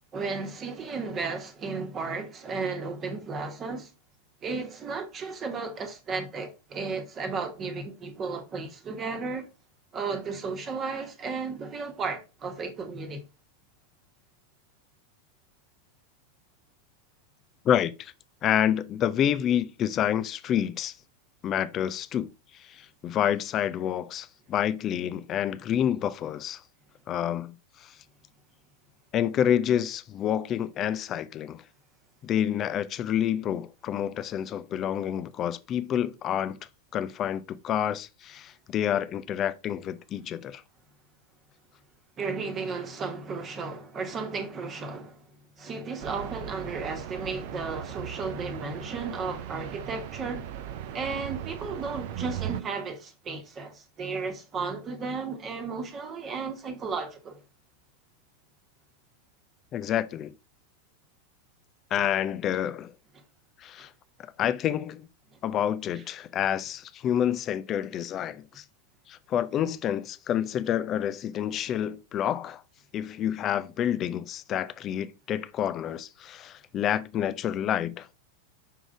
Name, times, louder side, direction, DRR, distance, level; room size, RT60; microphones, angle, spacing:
voice 1, 0.1-3.9 4.4-9.5 9.9-13.2 42.2-45.2 45.6-50.5 50.9-57.4, right 4 dB, 25° right, 1.3 m, -34 dB
voice 2, 17.6-18.1 18.4-20.9 21.4-22.3 22.5-26.6 27.1-27.5 27.8-27.9 29.1-31.6 32.2-36.6 36.9-40.6 59.7-60.3 61.9-62.9 63.6-63.9 64.4-65.1 65.4-68.6 69.1-72.6 72.9-78.2, left 10 dB, 30° left, 0.5 m, -28 dB
sound 1, 46.0-52.6, right 11 dB, 50° right, 0.7 m, -38 dB
6.4 x 3.8 x 4.8 m
figure-of-eight pair, 90°, 0 cm